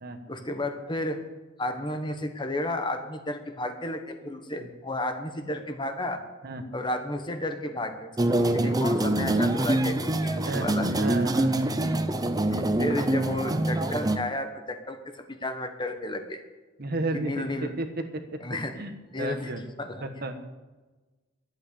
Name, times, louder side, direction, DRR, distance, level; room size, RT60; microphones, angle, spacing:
voice 1, 0.3-1.2 1.6-6.2 6.7-8.1 8.3-10.0 10.2-10.9 12.5-15.0 15.3-16.4 17.1-17.7 18.4-18.8 19.1-19.5 19.8-20.0, left 1 dB, 25° left, 6 dB, 1.2 m, -32 dB
sound 1, 8.2-14.2, right 1 dB, 20° right, 0.7 m, -25 dB
voice 2, 8.4-8.7 10.4-11.8 16.8-18.0 18.3-18.4 18.8-19.6 20.0-20.4, right 1 dB, 55° right, 7 dB, 1.3 m, -33 dB
11.5 x 8.4 x 8.4 m, 1.2 s
head